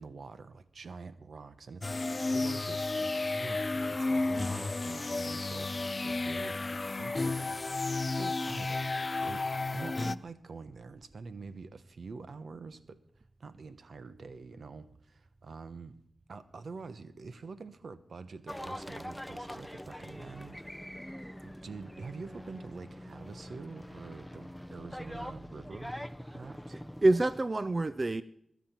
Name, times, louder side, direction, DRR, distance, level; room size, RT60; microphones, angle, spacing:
voice 1, 0.0-7.7 8.1-9.5 9.7-13.0 13.4-16.0 16.3-21.1 21.6-25.9 26.3-26.8, right 4 dB, 75° right, 0.9 m, -46 dB
sound 1, 1.8-10.2, left 3 dB, 40° left, 0.4 m, -32 dB
sound 2, 18.5-27.4, equal, 5° left, 0.6 m, -44 dB
voice 2, 26.7-28.2, right 2 dB, 40° right, 0.4 m, -27 dB
20.5 x 7.3 x 5.9 m
cardioid pair, 55°, 0 cm